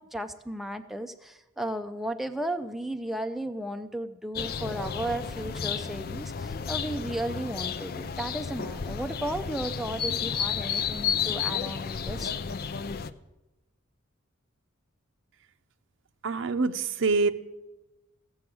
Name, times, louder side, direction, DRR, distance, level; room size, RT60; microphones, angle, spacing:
voice 1, 0.0-12.3, right 1 dB, ahead, 6 dB, 0.5 m, -34 dB
sound 1, 4.4-13.1, left 7 dB, 50° left, 0.5 m, -32 dB
voice 2, 16.2-17.3, right 4 dB, 65° right, 11 dB, 0.7 m, -25 dB
15.5 x 7.1 x 7.7 m, 1.0 s
head